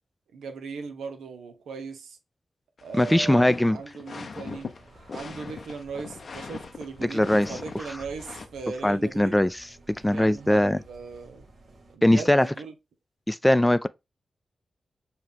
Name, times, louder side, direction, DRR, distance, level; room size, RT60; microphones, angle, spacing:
voice 1, 0.3-2.2 2.8-4.7 5.1-9.4 10.1-11.5 11.9-12.7, right 5 dB, 90° right, 0.6 m, -38 dB
sound 1, 2.8-8.5, left 4 dB, 65° left, 0.5 m, -40 dB
voice 2, 2.9-3.8 7.0-7.9 8.8-9.6 9.9-10.8 12.0-12.5 13.3-13.9, left 1 dB, 10° left, 0.3 m, -21 dB
sound 2, 4.5-12.0, right 1 dB, 70° right, 1.3 m, -53 dB
5.6 x 2.3 x 3.4 m
supercardioid pair, 40°, 0 cm